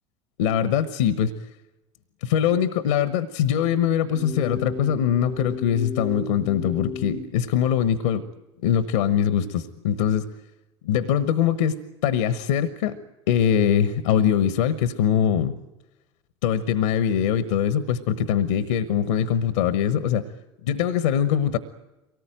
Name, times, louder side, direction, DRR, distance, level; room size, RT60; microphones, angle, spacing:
voice 1, 0.4-1.3 2.2-8.2 8.6-10.3 10.8-13.0 13.3-15.5 16.4-20.2 20.6-21.6, left 9 dB, 70° left, 12 dB, 1.1 m, -22 dB
sound 1, 4.1-7.3, left 6 dB, 30° left, 0.8 m, -34 dB
23.5 x 19.0 x 9.1 m, 1.1 s
hypercardioid pair, 70°, 15 cm